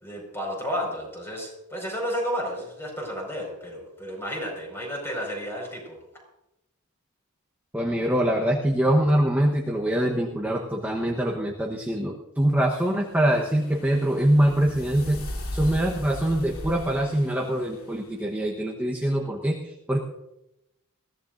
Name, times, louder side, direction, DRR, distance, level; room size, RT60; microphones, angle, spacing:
voice 1, 0.0-6.0, equal, 10° left, -1 dB, 5.1 m, -32 dB
voice 2, 7.7-15.2 15.5-20.0, right 1 dB, 10° right, -2 dB, 1.0 m, -24 dB
sound 1, 12.8-18.1, left 1 dB, 70° left, 2.7 m, -38 dB
21.5 x 16.0 x 2.6 m, 0.90 s
head